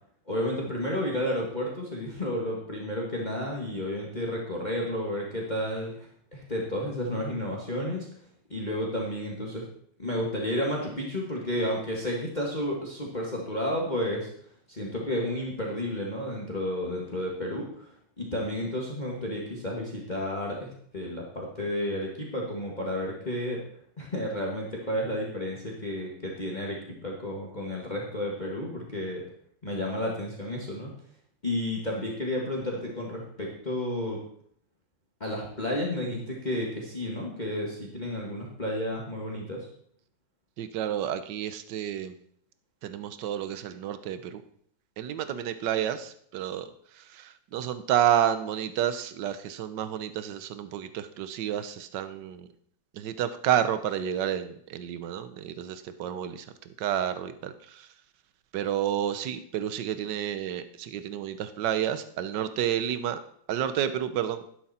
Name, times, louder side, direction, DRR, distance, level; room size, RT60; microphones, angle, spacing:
voice 1, 0.3-5.9 6.3-8.1 8.5-9.6 10.0-14.3 14.7-17.9 18.2-23.6 24.0-29.2 29.6-30.9 31.4-34.2 35.2-39.6, left 1 dB, 25° left, -2 dB, 2.0 m, -31 dB
voice 2, 40.6-42.1 42.8-44.4 45.0-52.5 52.9-56.5 56.8-57.9 58.5-63.2 63.5-64.5, right 10 dB, 70° right, 11 dB, 1.4 m, -30 dB
12.0 x 11.0 x 4.3 m, 0.64 s
omnidirectional pair, 2.1 m